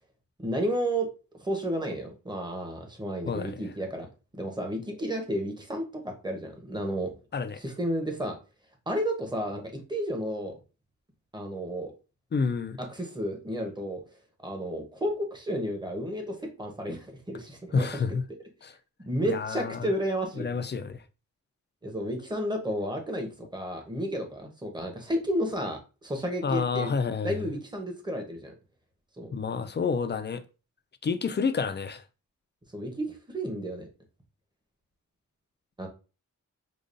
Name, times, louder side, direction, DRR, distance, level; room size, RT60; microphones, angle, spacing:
voice 1, 0.4-1.1 1.4-4.1 4.3-7.1 7.6-8.3 8.9-10.5 11.3-11.9 12.8-14.0 14.4-18.0 19.1-20.4 21.8-26.9 27.2-28.5 29.2-29.3 32.7-33.9 35.8-35.9, equal, 15° right, 1.0 m, -32 dB
voice 2, 3.3-3.6 7.3-7.6 12.3-12.8 17.7-18.2 18.6-18.8 19.2-19.9 20.4-21.0 26.4-27.5 29.3-30.4 31.0-32.0, left 5 dB, 35° left, 0.4 m, -29 dB
5.0 x 2.3 x 2.6 m
wide cardioid pair, 100°, 31 cm